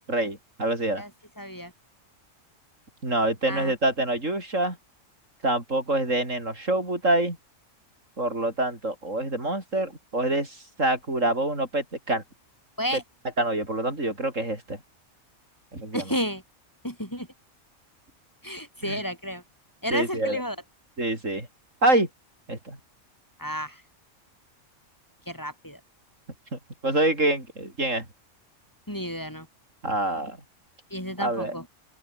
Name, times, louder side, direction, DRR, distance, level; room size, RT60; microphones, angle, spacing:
voice 1, 0.1-1.0 3.0-4.8 5.4-7.4 8.2-12.2 13.4-14.8 15.7-16.0 18.8-19.0 19.9-20.4 21.0-21.5 21.8-22.1 22.5-22.8 26.8-28.1 29.8-30.4 31.2-31.5, right 1 dB, 75° right, 7.1 m, -26 dB
voice 2, 1.4-1.7 3.5-3.7 12.8-13.0 15.9-16.4 16.8-17.3 18.4-19.4 19.8-20.6 23.4-23.8 25.3-25.8 28.9-29.5 30.9-31.7, equal, 15° left, 6.8 m, -31 dB
open air
omnidirectional pair, 1.3 m